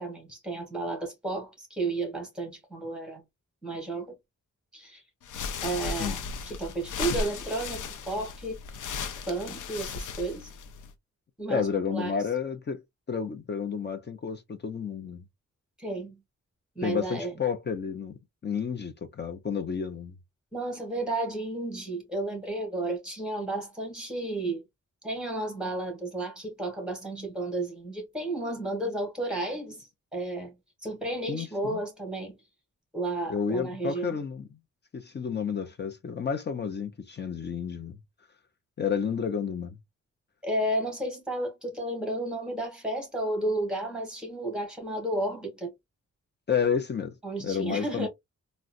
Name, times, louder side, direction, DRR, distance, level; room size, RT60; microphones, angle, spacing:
voice 1, 0.0-3.2 3.6-4.1 4.7-5.0 5.6-8.6 9.3-10.5 11.4-12.1 15.8-16.2 16.7-17.3 20.5-24.6 25.0-32.4 32.9-34.2 40.4-45.7 47.2-48.1, right 2 dB, 5° right, 1.3 m, -32 dB
sound 1, 5.2-10.9, left 4 dB, 85° left, 0.6 m, -35 dB
voice 2, 11.5-12.8 13.1-15.2 16.8-18.2 18.4-20.2 31.3-31.8 33.3-34.5 34.9-38.0 38.8-39.8 46.5-48.1, left 6 dB, 35° left, 0.5 m, -31 dB
3.8 x 2.1 x 2.4 m
wide cardioid pair, 155°, 30 cm